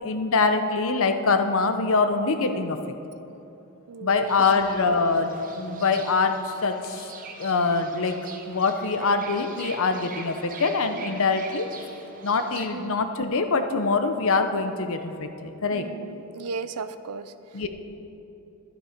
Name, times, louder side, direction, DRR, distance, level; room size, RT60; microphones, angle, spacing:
voice 1, 0.0-2.8 4.0-7.1 7.4-8.2 8.5-11.7 12.2-15.8 17.5-17.7, left 4 dB, 65° left, 8 dB, 0.8 m, -24 dB
voice 2, 2.4-2.7 3.9-4.4 10.9-11.2 12.7-13.0 15.7-17.7, right 5 dB, 85° right, 13 dB, 0.6 m, -36 dB
Fowl / Bird, 4.3-12.7, right 4 dB, 40° right, 1.0 m, -43 dB
12.0 x 11.5 x 5.1 m, 3.0 s
head